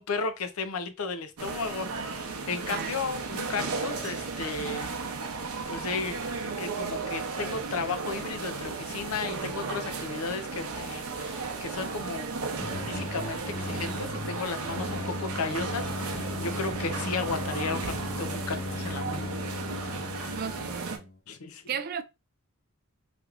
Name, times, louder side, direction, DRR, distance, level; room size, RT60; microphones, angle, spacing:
voice 1, 0.0-4.9 5.7-12.3 12.8-19.3 19.8-20.4 21.3-21.6, left 4 dB, 90° left, 0.6 m, -34 dB
sound 1, 1.4-21.0, right 4 dB, 90° right, 0.7 m, -35 dB
sound 2, 12.6-21.2, left 2 dB, 35° left, 0.8 m, -37 dB
voice 2, 20.3-21.1 21.7-22.0, right 7 dB, 45° right, 0.3 m, -34 dB
3.3 x 3.0 x 2.4 m
head